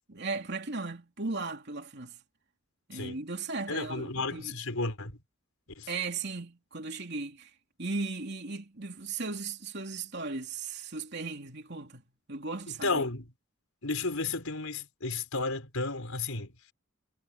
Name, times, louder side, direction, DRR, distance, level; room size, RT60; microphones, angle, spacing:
voice 1, 0.1-2.2 2.9-4.8 5.9-7.5 7.8-12.0 12.3-13.0, right 3 dB, 55° right, 3.2 m, -37 dB
voice 2, 3.7-5.2 5.8-5.9 12.7-13.3 13.8-16.7, left 3 dB, 90° left, 4.7 m, -33 dB
head